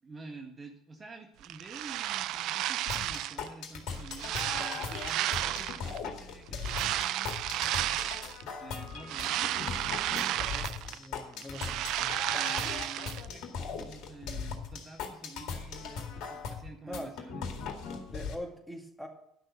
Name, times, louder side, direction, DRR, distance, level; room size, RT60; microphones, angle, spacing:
voice 1, 0.0-8.3 8.6-9.5 12.3-17.7, right 3 dB, 30° right, 3 dB, 1.6 m, -49 dB
sound 1, 1.4-3.5 3.9-6.0 6.6-8.4 8.8-11.1 11.3-13.3, right 13 dB, 60° right, 0.4 m, -33 dB
sound 2, 2.9-18.3, left 5 dB, 60° left, 2.0 m, -39 dB
voice 2, 10.5-12.2 16.9-17.1 18.1-19.1, left 1 dB, 5° left, 2 dB, 2.4 m, -43 dB
11.0 x 6.4 x 7.9 m, 0.75 s
hypercardioid pair, 70°, 0 cm